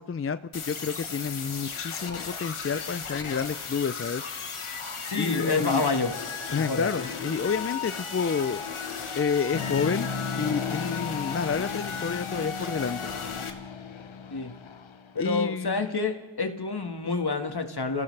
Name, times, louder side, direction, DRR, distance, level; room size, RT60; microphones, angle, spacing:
voice 1, 0.0-4.2 5.2-5.8 6.5-8.6 9.1-10.1 10.4-13.1 15.2-15.8, left 6 dB, 30° left, 13 dB, 0.4 m, -29 dB
sound 1, 0.5-13.5, left 5 dB, 85° left, 1.3 m, -35 dB
voice 2, 5.0-6.1 6.6-7.2 14.3-14.5 15.1-18.0, left 4 dB, 50° left, 6 dB, 1.7 m, -28 dB
sound 2, 9.5-15.3, left 5 dB, 70° left, 0.9 m, -36 dB
27.5 x 15.5 x 3.3 m, 1.3 s
wide cardioid pair, 45°, 49 cm